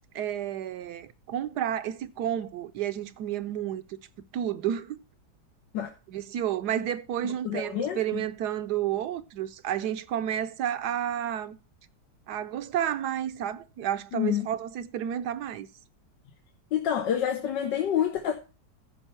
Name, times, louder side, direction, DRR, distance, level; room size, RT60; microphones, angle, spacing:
voice 1, 0.1-4.0 4.3-5.0 6.1-11.6 12.3-15.7, right 10 dB, 75° right, 1.2 m, -31 dB
voice 2, 7.2-8.2 14.1-14.5 16.7-18.3, left 9 dB, 85° left, 1.6 m, -28 dB
14.5 x 5.5 x 4.3 m
omnidirectional pair, 1.9 m